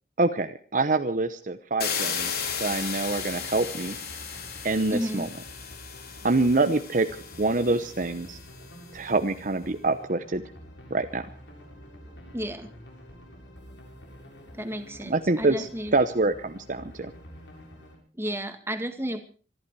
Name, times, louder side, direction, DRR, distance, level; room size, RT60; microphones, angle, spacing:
voice 1, 0.2-4.0 4.6-5.3 6.2-7.1 7.4-8.4 8.9-10.4 10.9-11.3 15.0-17.1, right 2 dB, 45° right, 9 dB, 0.9 m, -26 dB
sound 1, 1.8-8.6, left 6 dB, 55° left, 3.5 m, -35 dB
sound 2, 2.2-18.0, equal, 75° left, 7.3 m, -48 dB
voice 2, 4.9-5.3 12.3-12.7 14.6-15.9 18.2-19.2, equal, 15° right, 7 dB, 1.9 m, -32 dB
25.5 x 11.5 x 4.8 m, 0.40 s
head